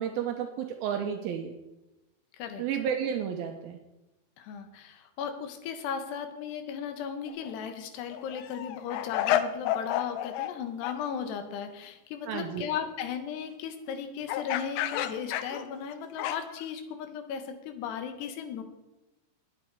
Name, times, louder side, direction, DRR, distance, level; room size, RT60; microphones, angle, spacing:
voice 1, 0.0-1.5 2.6-3.8 12.3-12.7, right 8 dB, 85° right, 4 dB, 2.1 m, -32 dB
voice 2, 4.4-18.6, left 7 dB, 70° left, 7 dB, 3.1 m, -36 dB
sound 1, 7.3-7.5 8.0-10.6 10.8-11.0 14.3-16.6, left 12 dB, 85° left, 3.3 m, -31 dB
21.0 x 8.6 x 4.7 m, 0.98 s
omnidirectional pair, 5.5 m